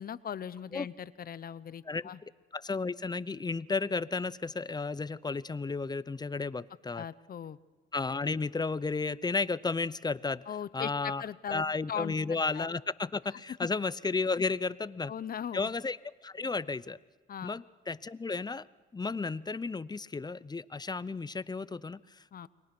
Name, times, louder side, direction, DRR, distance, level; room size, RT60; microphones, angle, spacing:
voice 1, 0.0-2.2 6.9-7.6 10.5-12.7 13.6-13.7 15.1-15.7 17.3-17.6 22.3-22.5, left 8 dB, 50° left, 16 dB, 0.9 m, -39 dB
voice 2, 2.5-7.0 7.9-10.4 10.7-11.2 11.5-15.1 15.5-16.0 16.2-17.0 17.4-18.7 18.9-22.5, left 4 dB, 20° left, 18 dB, 0.7 m, -33 dB
29.5 x 22.0 x 6.1 m, 1.3 s
cardioid pair, 90°, 20 cm